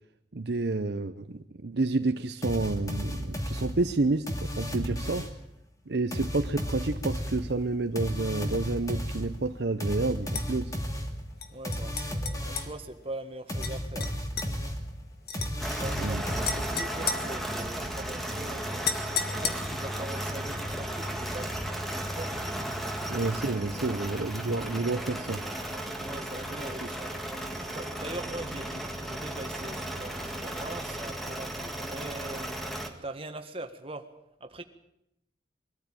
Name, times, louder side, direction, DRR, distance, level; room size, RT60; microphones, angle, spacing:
voice 1, 0.3-5.3 5.9-10.8 16.0-16.2 23.1-25.4, right 3 dB, 60° right, 8 dB, 0.7 m, -29 dB
sound 1, 2.4-5.5 6.1-12.8 13.5-17.0, equal, 20° left, 2.3 m, -34 dB
sound 2, 10.3-10.5 11.4-12.7 13.6-13.7 14.0-14.5 15.3-15.5 16.4-17.9 18.8-19.9, left 6 dB, 55° left, 1.6 m, -34 dB
voice 2, 11.5-14.1 15.7-21.6 22.1-22.3 23.5-24.0 26.0-32.5 33.0-34.1 34.4-34.6, right 2 dB, 30° right, 6 dB, 1.6 m, -42 dB
sound 3, 15.6-32.9, right 1 dB, ahead, 1.8 m, -35 dB
22.0 x 13.5 x 9.1 m, 0.83 s
head